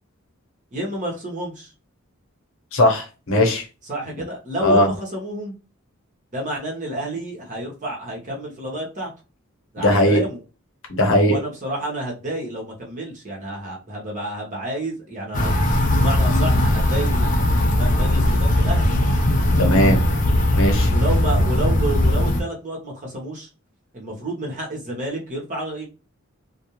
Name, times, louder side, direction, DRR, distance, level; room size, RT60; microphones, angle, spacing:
voice 1, 0.7-1.7 3.9-5.5 6.3-9.1 9.7-10.4 11.2-15.5 15.9-18.9 20.9-23.5 23.9-25.9, right 1 dB, 35° right, -2 dB, 1.0 m, -30 dB
voice 2, 2.7-3.7 4.6-4.9 9.8-10.2 10.9-11.4 19.6-20.0 20.5-20.9, left 1 dB, 65° left, 2 dB, 0.8 m, -18 dB
sound 1, 15.3-22.4, left 1 dB, 35° left, 0.5 m, -19 dB
2.5 x 2.2 x 2.9 m, 0.32 s
head